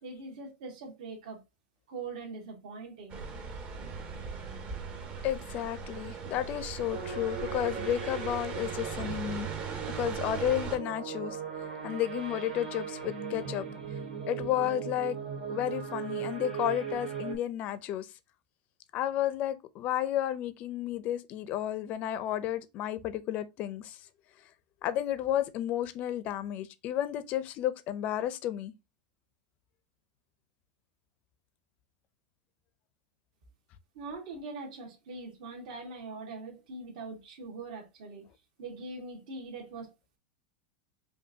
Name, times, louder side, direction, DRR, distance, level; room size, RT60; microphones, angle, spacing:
voice 1, 0.0-1.4 1.9-3.2 33.9-38.2 38.6-39.9, right 3 dB, 60° right, 1.6 m, -42 dB
sound 1, 3.1-10.8, right 6 dB, 30° right, 0.8 m, -39 dB
voice 2, 5.2-9.5 9.9-11.4 11.8-13.7 14.3-15.2 15.5-18.1 18.9-24.1 24.8-28.7, left 12 dB, 35° left, 0.5 m, -32 dB
sound 2, 6.9-17.4, right 7 dB, 80° right, 2.3 m, -38 dB
5.1 x 2.6 x 2.7 m
supercardioid pair, 155°, 4 cm